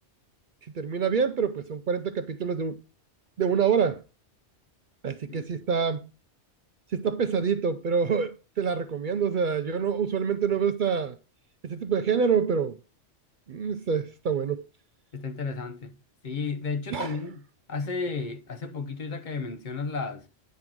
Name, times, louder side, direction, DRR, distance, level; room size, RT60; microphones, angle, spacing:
voice 1, 0.7-2.8 3.4-4.0 5.0-6.0 6.9-11.2 11.6-12.8 13.5-14.6 16.9-17.2, right 6 dB, 55° right, 0.6 m, -26 dB
voice 2, 15.1-15.9 16.2-17.4 17.7-20.2, left 4 dB, 45° left, 0.8 m, -33 dB
9.4 x 3.8 x 5.9 m
omnidirectional pair, 1.2 m